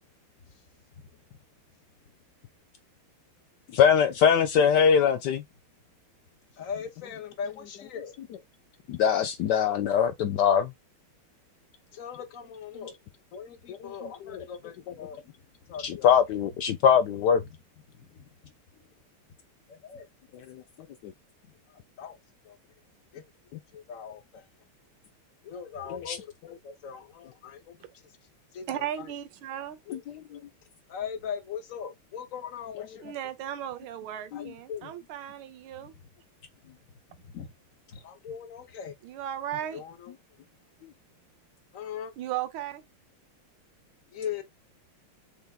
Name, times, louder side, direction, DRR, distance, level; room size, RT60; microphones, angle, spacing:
voice 1, 3.7-5.4 8.9-10.7 13.7-13.8 15.8-17.4 25.9-26.2 29.9-30.0, left 7 dB, 85° left, 0.9 m, -22 dB
voice 2, 6.6-8.2 11.9-13.0 13.3-15.3 15.7-16.2 17.4-17.6 17.9-18.5 19.7-20.0 21.7-22.2 22.4-22.6 23.1-23.2 23.7-24.4 25.4-28.0 28.5-29.1 29.9-30.0 30.3-30.4 30.9-33.1 34.3-35.0 37.2-37.5 37.9-38.9 39.7-40.1 41.7-42.1 44.1-44.4, left 7 dB, 55° left, 0.9 m, -40 dB
voice 3, 28.7-29.8 33.0-36.0 39.0-39.8 42.2-42.8, right 11 dB, 80° right, 1.6 m, -36 dB
6.6 x 3.5 x 2.3 m
omnidirectional pair, 2.3 m